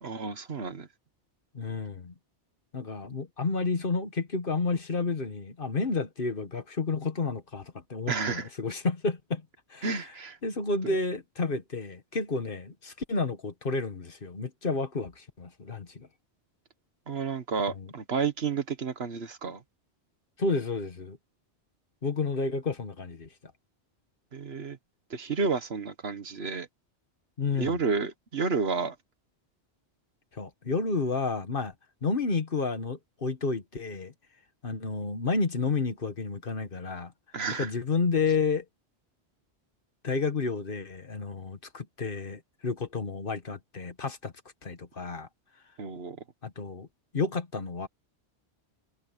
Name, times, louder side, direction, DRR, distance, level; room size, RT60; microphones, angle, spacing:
voice 1, 0.0-0.9 8.1-8.5 9.8-10.4 10.8-10.9 17.1-19.6 24.3-24.8 25.1-26.7 27.6-28.9 37.3-37.7 45.8-46.2, right 5 dB, 65° right, 1.5 m, -31 dB
voice 2, 1.5-2.1 2.7-9.4 9.7-10.1 10.4-16.1 17.7-17.9 20.4-21.2 22.0-23.3 27.4-27.8 30.3-31.7 32.0-34.1 34.6-37.1 37.6-38.6 40.0-44.3 44.6-45.3 46.4-46.9 47.1-47.9, left 4 dB, 50° left, 1.6 m, -31 dB
omnidirectional pair, 1.1 m